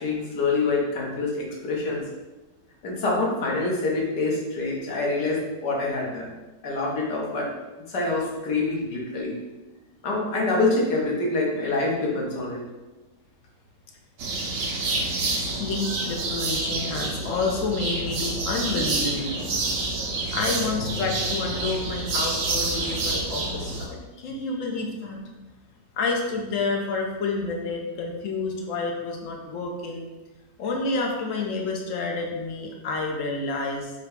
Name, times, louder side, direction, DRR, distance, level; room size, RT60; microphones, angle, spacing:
voice 1, 0.0-2.0 2.8-6.3 6.6-7.5 7.9-9.3 10.0-12.6, left 3 dB, 75° left, -2 dB, 1.7 m, -26 dB
sound 1, 14.2-23.9, right 3 dB, 80° right, 1.4 m, -28 dB
voice 2, 15.5-19.7 20.3-25.2 26.0-30.1 30.6-33.9, left 3 dB, 60° left, 1 dB, 0.9 m, -29 dB
4.9 x 2.2 x 4.6 m, 1.1 s
omnidirectional pair, 1.8 m